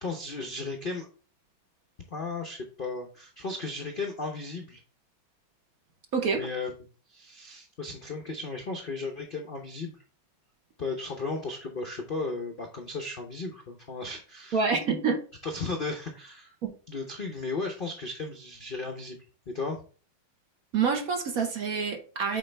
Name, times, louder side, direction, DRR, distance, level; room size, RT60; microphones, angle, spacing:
voice 1, 0.0-1.1 2.1-4.8 6.3-10.0 10.8-14.6 15.4-16.5 16.9-19.2 19.5-19.8, left 3 dB, 60° left, 2 dB, 0.5 m, -35 dB
voice 2, 6.1-6.4 14.5-15.2 16.6-16.7 20.7-22.4, right 5 dB, 55° right, 4 dB, 1.2 m, -27 dB
7.8 x 4.0 x 3.3 m, 0.38 s
omnidirectional pair, 2.2 m